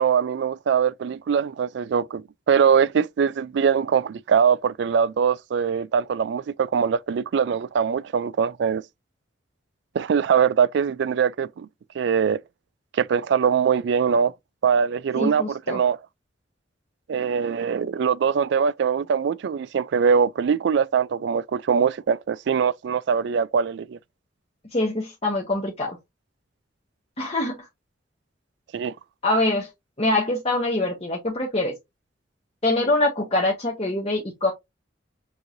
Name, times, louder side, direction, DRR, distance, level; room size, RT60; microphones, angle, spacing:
voice 1, 0.0-8.8 9.9-11.7 12.0-12.4 12.9-14.3 14.6-16.0 17.1-24.0 28.7-28.9, right 7 dB, 65° right, 0.3 m, -22 dB
voice 2, 15.2-15.8 24.7-26.0 27.2-27.6 29.2-29.7 30.0-31.7 32.6-34.5, left 2 dB, 35° left, 1.2 m, -24 dB
6.3 x 3.0 x 2.6 m
head